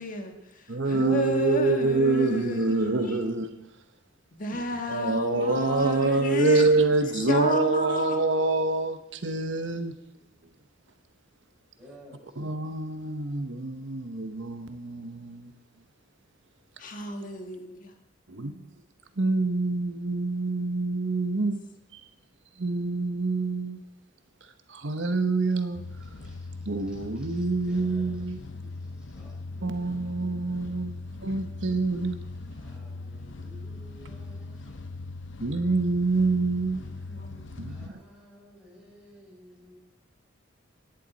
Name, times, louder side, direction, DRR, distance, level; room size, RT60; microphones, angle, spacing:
voice 1, 0.0-3.2 4.3-6.7 7.1-8.2 16.8-17.9 37.1-37.4, left 2 dB, 45° left, 1.5 m, -32 dB
voice 2, 0.7-3.5 4.5-4.6 4.9-9.9 12.4-15.5 18.3-18.6 19.2-21.6 22.6-23.8 24.7-25.8 26.7-28.4 29.6-30.9 31.2-32.2 35.4-36.8 37.6-37.7, right 3 dB, 75° right, 1.1 m, -26 dB
voice 3, 9.6-10.4 11.7-12.4 25.5-25.6 26.1-26.5 26.9-28.3 28.6-30.1 32.5-35.0 37.6-39.8, equal, 5° right, 5.8 m, -54 dB
sound 1, 25.7-37.9, left 3 dB, 75° left, 0.8 m, -40 dB
17.5 x 10.5 x 4.2 m
head